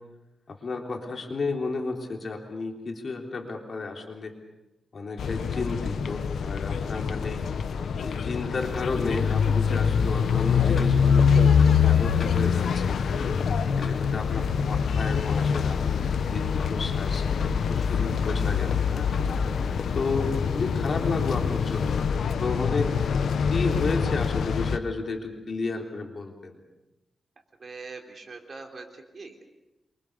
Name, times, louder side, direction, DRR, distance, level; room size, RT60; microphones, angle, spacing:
voice 1, 0.5-4.3 4.9-7.4 8.0-13.0 13.7-19.1 19.9-22.1 22.4-22.9 23.5-26.6, left 3 dB, 45° left, 2 dB, 3.7 m, -32 dB
sound 1, 5.2-24.8, left 6 dB, 80° left, 1.2 m, -25 dB
sound 2, 8.5-22.1, left 5 dB, 60° left, 3.1 m, -43 dB
voice 2, 27.6-29.4, right 4 dB, 45° right, 3 dB, 3.6 m, -43 dB
26.5 x 24.5 x 7.0 m, 1.0 s
wide cardioid pair, 125°, 0 cm